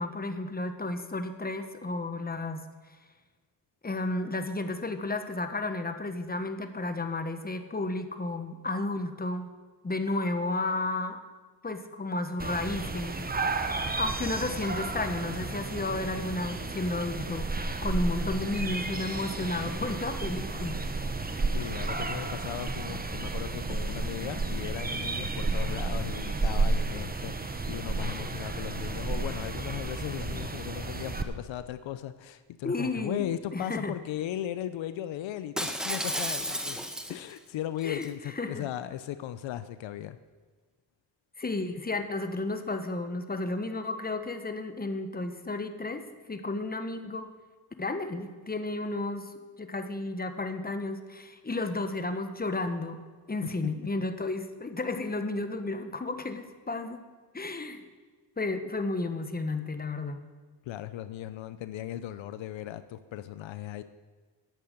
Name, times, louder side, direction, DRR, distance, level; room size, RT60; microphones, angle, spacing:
voice 1, 0.0-2.6 3.8-9.5 9.8-11.2 11.6-13.2 13.8-17.5 17.8-20.8 32.6-33.9 37.8-38.1 38.4-38.7 41.4-46.0 46.3-47.3 47.8-49.3 49.6-53.0 53.3-57.0 57.3-57.8 58.4-60.2, left 2 dB, 20° left, 8 dB, 1.3 m, -32 dB
sound 1, 12.4-31.2, right 3 dB, 20° right, 1.1 m, -32 dB
voice 2, 21.5-36.8 37.1-40.2 53.4-53.6 60.7-63.8, left 12 dB, 80° left, 13 dB, 0.7 m, -37 dB
Shatter, 35.6-37.4 37.8-38.1, equal, ahead, 1.1 m, -32 dB
10.5 x 8.6 x 7.8 m, 1.4 s
cardioid pair, 65°, 45 cm